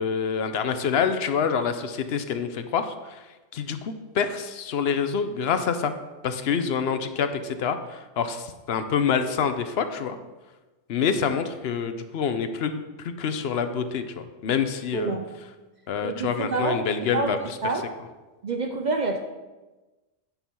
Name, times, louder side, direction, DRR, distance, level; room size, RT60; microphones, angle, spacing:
voice 1, 0.0-3.2 3.5-5.9 6.2-10.2 10.9-14.0 14.4-15.2 15.9-17.4, left 6 dB, 60° left, 9 dB, 0.8 m, -26 dB
voice 2, 14.9-15.3 16.0-16.9 17.1-17.9 18.4-19.2, right 3 dB, 55° right, 4 dB, 0.5 m, -27 dB
9.2 x 5.4 x 4.4 m, 1.2 s
omnidirectional pair, 1.3 m